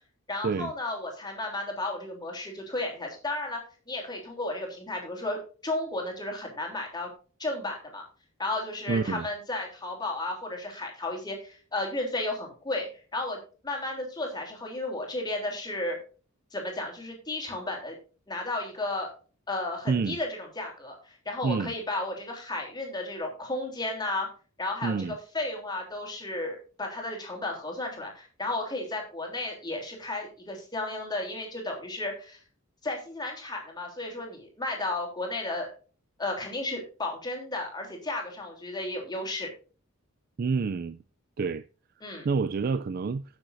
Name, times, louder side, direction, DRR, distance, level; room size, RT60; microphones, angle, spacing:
voice 1, 0.3-3.6 3.9-7.1 7.4-8.1 8.4-13.4 13.6-16.0 16.5-18.0 18.3-19.1 19.5-24.3 24.6-32.4 32.8-35.7 36.2-39.5 42.0-42.3, left 2 dB, 20° left, 3.4 m, -33 dB
voice 2, 8.9-9.3 19.9-20.2 21.4-21.7 24.8-25.2 40.4-41.0 41.4-41.6 42.2-43.2, right 4 dB, 45° right, 0.4 m, -28 dB
17.5 x 7.0 x 2.6 m
head